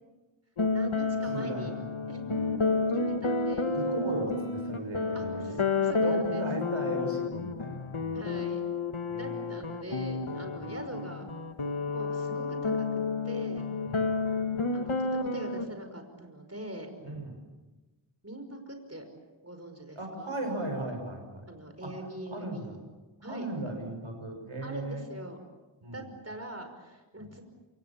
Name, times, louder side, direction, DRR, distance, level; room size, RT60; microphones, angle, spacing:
sound 1, 0.6-15.7, left 4 dB, 80° left, 1.7 m, -31 dB
voice 1, 0.7-1.7 2.1-2.3 2.9-3.7 5.1-6.4 8.1-8.8 9.1-11.3 11.9-13.7 14.7-16.9 18.2-19.0 19.4-20.4 21.5-22.8 23.2-23.5 24.6-25.5 25.9-27.4, right 1 dB, 30° right, 6 dB, 5.5 m, -43 dB
voice 2, 1.3-1.8 2.2-2.5 3.7-5.6 6.0-8.3 9.1-9.5 10.6-10.8 13.9-14.2 17.0-17.4 20.0-21.5 21.8-21.9 22.3-22.8 23.3-25.1 25.8-26.1, right 1 dB, 90° right, 4 dB, 5.9 m, -36 dB
27.5 x 26.5 x 7.2 m, 1.2 s
wide cardioid pair, 45°, 48 cm